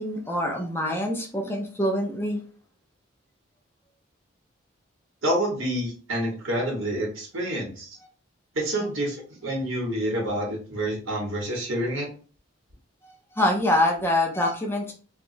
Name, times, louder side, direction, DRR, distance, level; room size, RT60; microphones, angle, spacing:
voice 1, 0.0-2.4 13.0-14.9, left 1 dB, 10° left, 1 dB, 0.4 m, -25 dB
voice 2, 5.2-7.9 8.5-12.1, right 1 dB, 85° right, -2 dB, 1.3 m, -28 dB
3.4 x 2.3 x 2.5 m, 0.39 s
head